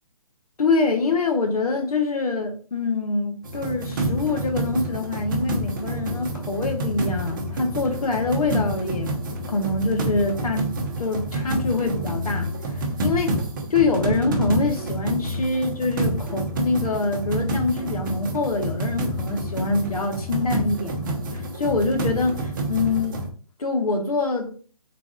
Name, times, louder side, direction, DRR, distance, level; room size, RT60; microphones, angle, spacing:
voice 1, 0.6-9.1 9.5-10.7 11.0-13.4 13.7-23.2 23.6-24.5, left 3 dB, 75° left, 1.3 m, -25 dB
sound 1, 3.4-23.3, right 1 dB, 35° right, 0.8 m, -28 dB
4.0 x 2.5 x 3.7 m
hypercardioid pair, 160°, 19 cm